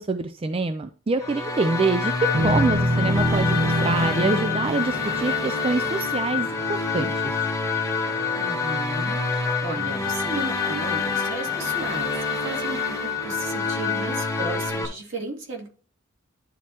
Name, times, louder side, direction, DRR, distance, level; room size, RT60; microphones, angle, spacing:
voice 1, 0.0-7.4, right 3 dB, 25° right, 9 dB, 0.4 m, -26 dB
sound 1, 1.2-14.9, left 1 dB, 15° left, 1.1 m, -29 dB
sound 2, 2.0-14.7, left 17 dB, 45° left, 0.5 m, -30 dB
sound 3, 2.3-6.8, equal, 85° right, 1.5 m, -26 dB
voice 2, 8.4-9.2 9.6-15.7, right 2 dB, 60° right, -1 dB, 2.5 m, -34 dB
11.5 x 4.2 x 3.0 m, 0.39 s
head